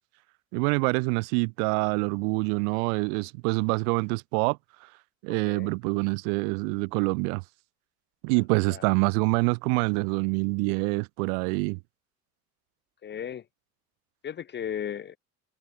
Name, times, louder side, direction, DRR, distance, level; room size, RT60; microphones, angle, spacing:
voice 1, 0.5-4.6 5.2-7.4 8.2-11.8, right 35 dB, 70° right, 0.7 m, -26 dB
voice 2, 5.3-5.7 8.4-8.9 13.0-13.4 14.2-15.2, left 9 dB, 25° left, 0.4 m, -36 dB
hypercardioid pair, 60°, 45 cm